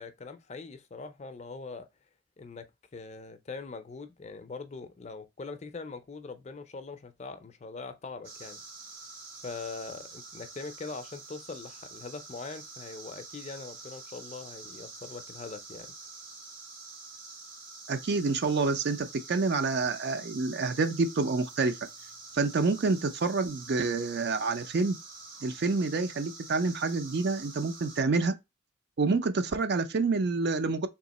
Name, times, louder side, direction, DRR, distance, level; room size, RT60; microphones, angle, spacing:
voice 1, 0.0-1.9 2.4-2.7 2.9-8.6 9.4-15.9, left 4 dB, 35° left, 0.5 m, -42 dB
sound 1, 8.2-28.0, right 3 dB, 70° right, 2.3 m, -47 dB
voice 2, 17.9-21.8 22.3-25.0 25.4-28.3 29.0-30.9, right 3 dB, 55° right, 0.5 m, -28 dB
3.6 x 2.8 x 4.0 m
head